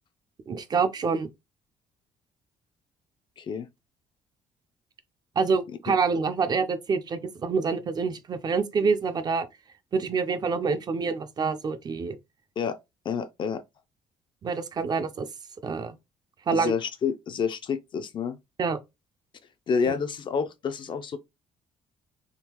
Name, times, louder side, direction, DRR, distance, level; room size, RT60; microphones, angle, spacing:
voice 1, 0.5-1.3 5.4-9.5 9.9-12.2 14.4-15.3 15.6-16.0 16.5-16.7 18.6-18.8, right 5 dB, 30° right, 0.4 m, -26 dB
voice 2, 3.4-3.7 5.9-6.0 12.6-12.8 13.1-13.6 16.5-18.4 19.7-21.2, left 6 dB, 35° left, 0.4 m, -29 dB
3.7 x 2.4 x 2.9 m
cardioid pair, 145°, 13 cm